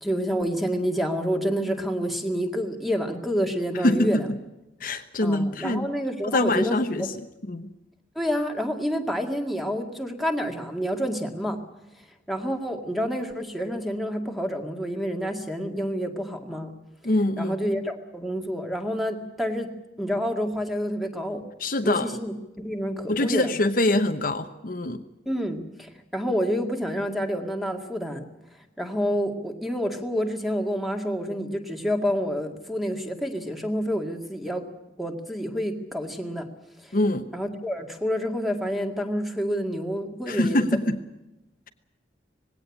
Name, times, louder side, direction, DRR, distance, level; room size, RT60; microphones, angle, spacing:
voice 1, 0.0-4.3 5.2-7.1 8.2-11.6 12.3-16.7 17.4-19.7 20.0-21.4 21.8-23.5 25.3-28.3 28.8-34.7 35.0-36.5 36.8-36.9 37.3-40.7, equal, ahead, 4 dB, 2.1 m, -28 dB
voice 2, 3.8-4.2 4.8-5.9 6.2-7.2 7.5-7.7 17.0-17.6 21.6-22.1 23.1-25.0 36.9-37.3 40.3-41.0, left 1 dB, 50° left, 7 dB, 1.0 m, -24 dB
19.5 x 17.0 x 9.9 m, 0.96 s
head